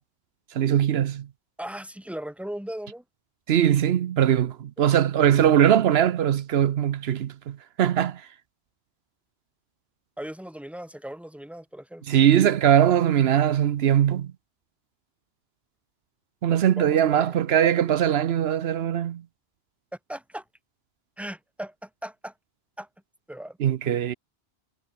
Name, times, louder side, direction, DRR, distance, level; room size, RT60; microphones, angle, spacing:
voice 1, 0.5-1.3 3.5-8.2 12.1-14.3 16.4-19.2 23.6-24.1, right 10 dB, 80° right, 0.9 m, -21 dB
voice 2, 1.6-3.0 10.2-12.0 16.5-17.4 20.1-20.4 21.2-22.3 22.8-22.9 23.3-23.6 23.8-24.2, right 1 dB, ahead, 2.1 m, -38 dB
omnidirectional pair, 1.1 m